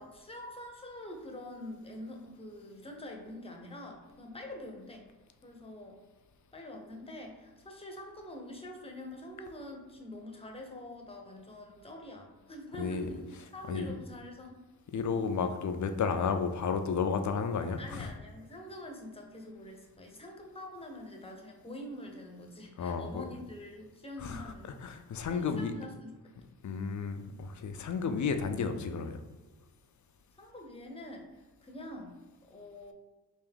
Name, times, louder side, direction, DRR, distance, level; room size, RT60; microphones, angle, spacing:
voice 1, 0.0-5.1 5.4-6.0 6.5-14.6 17.8-24.8 25.3-26.1 27.3-27.4 30.4-32.1 32.5-32.9, left 1 dB, 15° left, 2 dB, 0.7 m, -45 dB
voice 2, 12.8-13.1 13.7-13.9 14.9-18.1 22.8-23.2 24.2-24.5 24.8-25.7 26.6-29.2, left 5 dB, 50° left, 8 dB, 0.4 m, -32 dB
3.5 x 2.6 x 3.5 m, 1.2 s
cardioid pair, 75°, 40 cm